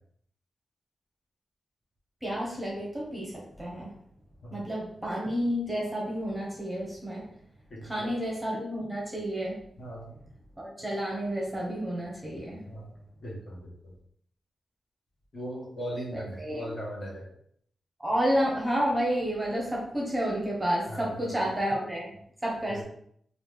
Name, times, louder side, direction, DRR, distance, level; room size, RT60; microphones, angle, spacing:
voice 1, 2.2-4.0 4.5-7.3 7.8-9.6 10.6-12.6 16.1-16.7 18.0-22.1 22.4-22.8, equal, 10° right, -4 dB, 1.0 m, -30 dB
voice 2, 7.7-8.1 9.8-10.1 12.6-12.9 13.2-13.9 15.3-17.3 20.9-21.4 22.7-22.8, equal, 45° left, -4 dB, 1.4 m, -39 dB
4.1 x 2.6 x 3.4 m, 0.66 s
wide cardioid pair, 145°, 0 cm